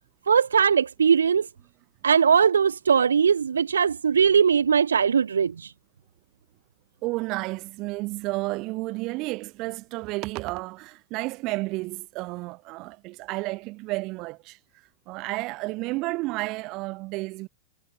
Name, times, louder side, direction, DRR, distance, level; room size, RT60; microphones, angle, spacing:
voice 1, 0.3-1.5 2.0-5.7, right 6 dB, 70° right, 0.4 m, -20 dB
voice 2, 7.0-14.6 15.1-17.5, right 22 dB, 40° right, 2.8 m, -31 dB
figure-of-eight pair, 90°, 0 cm